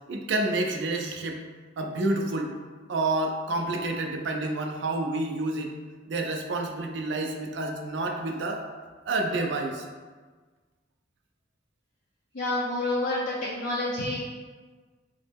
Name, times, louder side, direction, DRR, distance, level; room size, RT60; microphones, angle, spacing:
voice 1, 0.1-1.4 1.8-2.5 2.9-5.7 6.1-8.6 9.1-9.9, right 2 dB, 70° right, 3 dB, 0.4 m, -29 dB
voice 2, 12.3-14.2, left 2 dB, 55° left, -5 dB, 0.5 m, -28 dB
3.7 x 2.1 x 3.4 m, 1.4 s
head